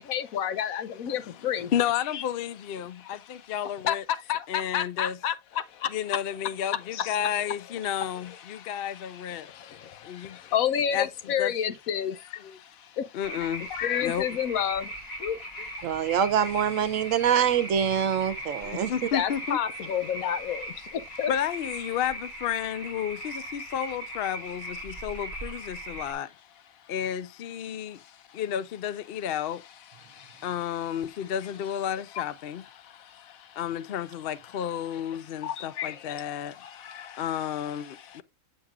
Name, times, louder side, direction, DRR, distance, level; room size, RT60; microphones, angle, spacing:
voice 1, 0.0-1.7 2.1-2.2 3.0-3.4 3.8-6.2 6.7-7.2 8.0-13.2 13.7-16.1 19.1-21.3 28.0-28.4 30.0-30.5 32.1-32.2 32.8-33.6 34.9-35.0 35.4-38.2, left 9 dB, 80° left, 1.1 m, -32 dB
voice 2, 1.7-4.0 4.5-5.2 5.9-9.5 10.0-10.4 10.9-11.5 12.4-12.6 13.1-13.7 14.0-14.3 18.6-19.6 21.3-26.3 26.9-28.0 28.3-29.6 30.4-32.6 33.6-36.5 37.1-38.2, left 9 dB, 60° left, 0.7 m, -32 dB
sound 1, 13.2-26.1, right 1 dB, 30° left, 2.4 m, -39 dB
voice 3, 15.8-18.9, right 8 dB, 70° right, 1.0 m, -25 dB
7.8 x 7.3 x 2.4 m
omnidirectional pair, 1.5 m